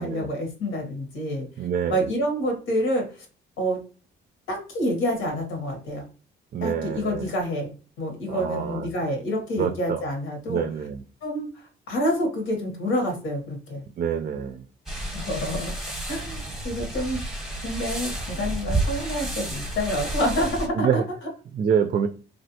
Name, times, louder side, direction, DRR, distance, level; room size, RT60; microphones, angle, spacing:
voice 1, 0.0-1.5 1.9-3.2 3.6-3.8 4.5-6.0 6.6-10.6 11.2-13.8 15.1-15.8 16.1-16.4 16.6-17.2 17.6-21.0, equal, 85° left, 3 dB, 1.2 m, -28 dB
voice 2, 1.6-2.0 6.5-7.3 8.3-8.9 9.6-10.0 10.5-11.0 14.0-14.6 20.8-21.0 21.5-22.1, right 7 dB, 45° right, 7 dB, 0.4 m, -26 dB
sound 1, 14.9-20.7, right 1 dB, ahead, 0.9 m, -31 dB
3.2 x 2.5 x 2.8 m, 0.37 s
cardioid pair, 90°, 20 cm